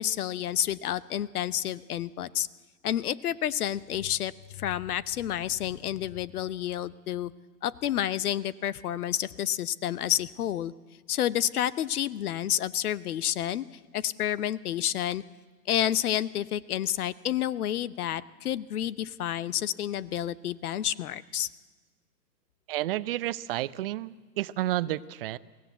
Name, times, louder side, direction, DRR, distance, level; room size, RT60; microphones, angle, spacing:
voice 1, 0.0-2.5 2.8-7.3 7.6-10.7 11.1-13.7 13.9-15.2 15.7-21.5, left 11 dB, 60° left, 18 dB, 0.9 m, -29 dB
voice 2, 22.7-25.4, right 15 dB, 35° right, 17 dB, 0.6 m, -31 dB
22.5 x 17.0 x 8.1 m, 1.4 s
hypercardioid pair, 125°, 50 cm